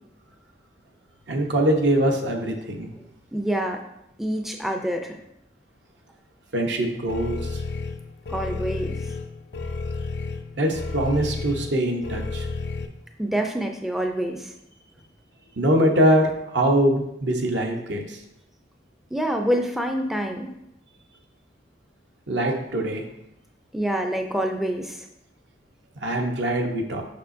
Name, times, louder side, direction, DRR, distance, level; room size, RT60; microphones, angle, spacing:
voice 1, 1.3-2.9 6.5-7.6 10.6-12.5 15.6-18.2 22.3-23.0 26.0-27.0, right 1 dB, 70° right, 2 dB, 0.9 m, -23 dB
voice 2, 3.3-3.8 4.2-5.2 8.3-9.0 13.2-14.5 19.1-20.5 23.7-25.1, equal, ahead, 3 dB, 0.4 m, -26 dB
sound 1, 7.1-12.9, left 3 dB, 65° left, 0.5 m, -31 dB
6.7 x 5.7 x 2.6 m, 0.82 s
head